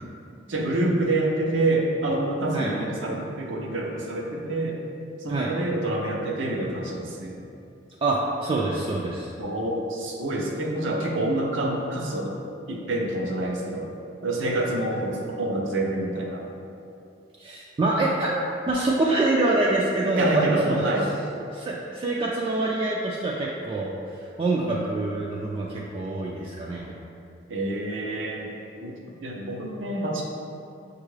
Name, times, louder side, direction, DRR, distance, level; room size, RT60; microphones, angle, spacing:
voice 1, 0.5-4.8 5.2-7.4 9.4-12.4 12.7-13.9 14.2-16.4 20.0-21.1 27.5-28.5 28.8-30.2, right 1 dB, 85° right, -1 dB, 0.6 m, -27 dB
voice 2, 8.0-9.3 17.4-18.3 18.7-20.8 21.5-23.9 24.4-27.0, right 2 dB, 30° right, -4 dB, 0.3 m, -25 dB
6.3 x 2.4 x 3.1 m, 2.6 s
head